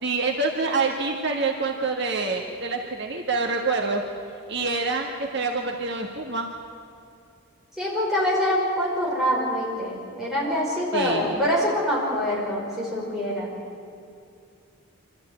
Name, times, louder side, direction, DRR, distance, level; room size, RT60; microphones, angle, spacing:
voice 1, 0.0-4.0 4.5-6.5 10.9-11.2, right 3 dB, 50° right, 1 dB, 1.5 m, -26 dB
voice 2, 7.7-13.5, equal, ahead, -6 dB, 5.6 m, -25 dB
25.5 x 13.5 x 9.6 m, 2.4 s
head